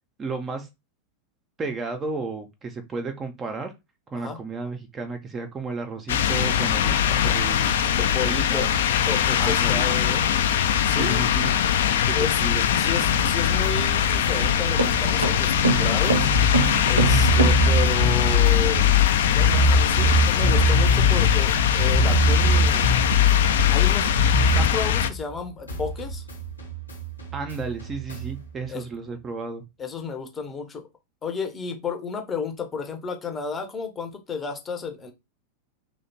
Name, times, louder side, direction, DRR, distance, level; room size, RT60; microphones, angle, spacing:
voice 1, 0.2-0.7 1.6-3.7 4.1-7.7 8.3-8.8 9.4-9.9 11.0-11.5 12.1-12.7 27.3-29.6, right 4 dB, 20° right, 0.5 m, -33 dB
sound 1, 6.1-25.1, left 9 dB, 60° left, 0.3 m, -22 dB
voice 2, 7.7-8.7 9.0-10.3 10.8-11.3 12.1-12.4 12.8-16.3 16.9-19.0 19.3-23.0 23.7-24.1 24.5-26.2 28.7-28.8 29.8-30.8 31.2-35.1, left 5 dB, 20° left, 0.6 m, -32 dB
sound 2, 13.5-18.0, right 2 dB, 75° right, 0.5 m, -26 dB
sound 3, 13.6-25.4 25.7-28.4, left 2 dB, 80° left, 0.8 m, -23 dB
2.8 x 2.0 x 2.7 m
figure-of-eight pair, 90°, 0 cm